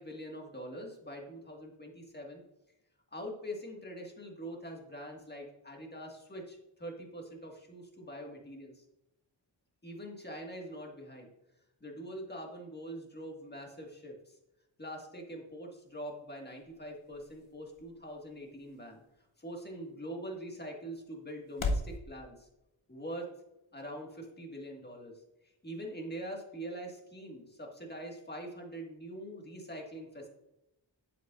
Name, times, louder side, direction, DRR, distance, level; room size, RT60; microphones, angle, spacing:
voice 1, 0.0-2.4 3.1-8.8 9.8-11.3 11.8-14.4 14.8-19.0 19.4-22.5 22.9-23.3 23.7-25.1 25.4-30.3, equal, 20° left, 0 dB, 1.7 m, -44 dB
sound 1, 15.7-22.0, left 2 dB, 85° left, 0.9 m, -42 dB
8.0 x 7.8 x 2.5 m, 0.90 s
wide cardioid pair, 70°, 46 cm